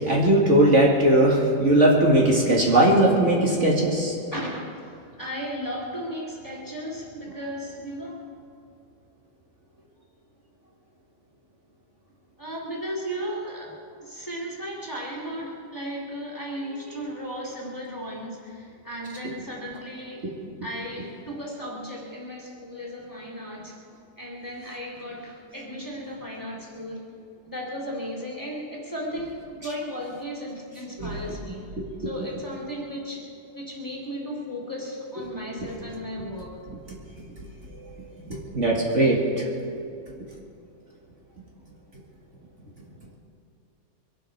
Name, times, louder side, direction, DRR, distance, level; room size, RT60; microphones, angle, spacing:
voice 1, 0.0-4.2 31.0-31.2 37.4-37.5 37.8-39.5 40.1-40.2, right 1 dB, 50° right, -3 dB, 2.3 m, -20 dB
voice 2, 4.3-4.9 5.2-8.3 12.4-20.3 20.6-23.8 24.2-27.1 27.4-31.6 32.0-33.3 33.5-36.6, equal, 10° left, -3 dB, 2.6 m, -35 dB
23.5 x 11.5 x 4.7 m, 2.5 s
omnidirectional pair, 1.7 m